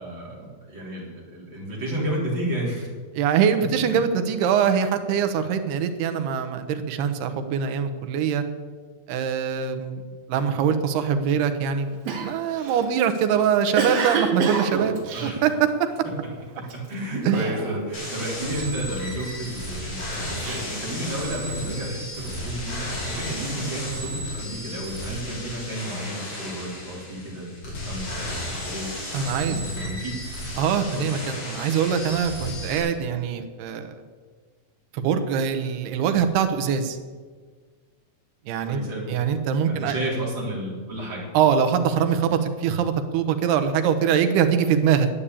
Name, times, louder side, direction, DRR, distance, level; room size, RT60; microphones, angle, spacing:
voice 1, 0.0-2.9 15.1-15.4 16.5-28.9 29.3-30.1 30.9-31.2 38.7-39.1 39.7-41.2, right 1 dB, 30° right, -4 dB, 4.2 m, -32 dB
voice 2, 3.1-8.4 9.1-10.0 10.3-12.0 12.2-15.7 17.2-17.5 29.1-29.6 30.6-34.0 34.9-37.0 38.5-38.8 39.1-39.9 41.3-45.1, right 7 dB, 90° right, 8 dB, 3.0 m, -23 dB
Cough, 12.1-16.1 16.6-16.9 17.3-18.0 18.3-19.5 20.0-21.5, right 6 dB, 70° right, 3.4 m, -28 dB
sound 1, 17.9-32.8, left 1 dB, 45° left, 5.8 m, -34 dB
11.5 x 8.8 x 8.5 m, 1.5 s
omnidirectional pair, 4.5 m